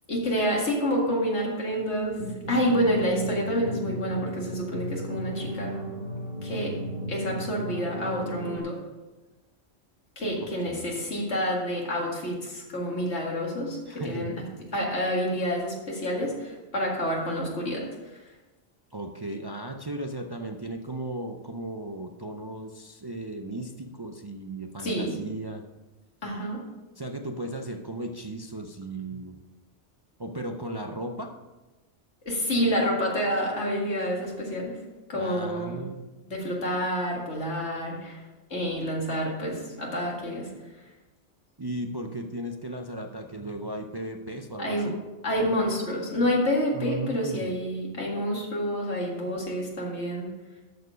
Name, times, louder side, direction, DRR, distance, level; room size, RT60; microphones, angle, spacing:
voice 1, 0.1-2.2 2.5-5.7 6.4-6.8 7.1-8.8 10.2-13.8 14.0-14.4 14.7-17.9 24.8-25.2 26.2-26.6 32.3-34.8 35.1-35.8 36.3-38.2 38.5-40.5 44.6-44.9 45.2-50.3, equal, 85° left, -2 dB, 2.5 m, -28 dB
sound 1, 2.0-8.6, right 1 dB, 60° right, 1.6 m, -35 dB
voice 2, 10.4-11.0 13.9-14.4 14.7-14.8 18.9-25.6 27.0-29.4 30.2-31.3 35.1-36.1 41.6-45.0 46.7-47.5, right 1 dB, 30° right, 3 dB, 0.4 m, -36 dB
13.0 x 4.6 x 5.1 m, 1.1 s
omnidirectional pair, 1.1 m